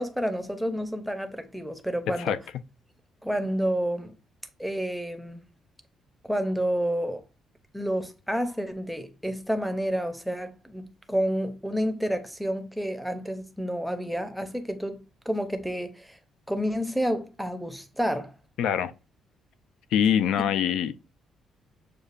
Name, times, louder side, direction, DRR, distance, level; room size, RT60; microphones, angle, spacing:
voice 1, 0.0-2.4 3.2-4.1 4.6-5.5 6.2-7.2 7.7-15.0 15.3-16.2 16.5-18.3, equal, ahead, 0.5 m, -29 dB
voice 2, 2.1-2.4 18.6-18.9 19.9-20.9, left 9 dB, 80° left, 0.3 m, -24 dB
6.6 x 2.4 x 2.4 m
cardioid pair, 135°, 0 cm